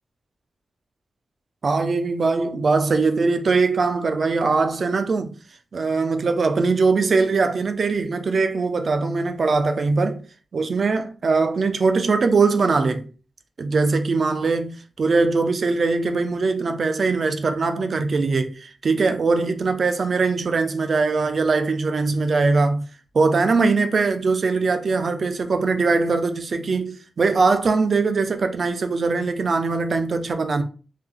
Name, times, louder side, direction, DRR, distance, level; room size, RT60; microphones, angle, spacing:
voice 1, 1.6-5.3 5.7-10.2 10.5-13.0 13.6-22.9 23.1-30.6, right 4 dB, 45° right, 0.4 m, -21 dB
3.3 x 2.2 x 3.6 m
wide cardioid pair, 140°, 0 cm